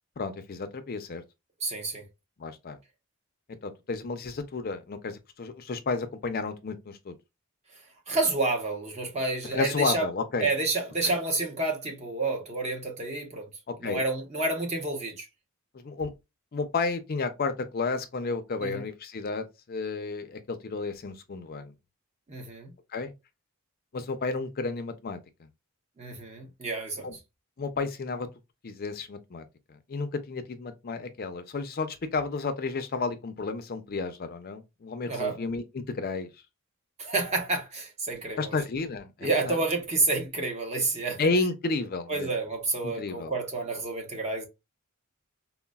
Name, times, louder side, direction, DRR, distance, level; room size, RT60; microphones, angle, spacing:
voice 1, 0.2-1.2 2.4-2.8 3.6-7.2 9.5-10.5 13.7-14.0 15.7-16.1 16.5-21.7 22.9-23.1 23.9-25.2 27.0-27.1 27.6-28.3 28.6-29.4 29.9-36.3 38.4-39.6 41.2-42.3 42.8-43.3, left 4 dB, 45° left, 0.4 m, -32 dB
voice 2, 1.6-2.1 7.7-10.1 10.4-13.5 13.8-15.3 18.6-18.8 22.3-22.7 26.0-27.1 35.1-35.4 37.0-38.6 39.2-41.2 42.1-44.4, right 3 dB, 30° right, 0.8 m, -29 dB
3.9 x 2.1 x 2.2 m
head